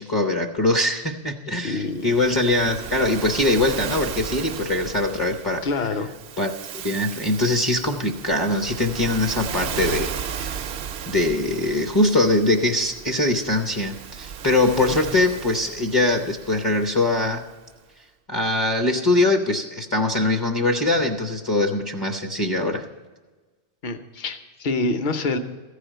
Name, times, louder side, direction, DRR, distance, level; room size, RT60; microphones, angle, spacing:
voice 1, 0.0-5.6 6.4-10.6 11.1-17.4 18.3-22.8, left 2 dB, 25° left, 4 dB, 0.7 m, -22 dB
voice 2, 1.6-2.2 5.6-6.1 14.8-15.0 23.8-25.4, left 3 dB, 50° left, 7 dB, 0.9 m, -26 dB
Waves surf, 1.9-17.4, right 7 dB, 75° right, 0.8 m, -35 dB
14.5 x 5.0 x 9.0 m, 1.3 s
omnidirectional pair, 1.1 m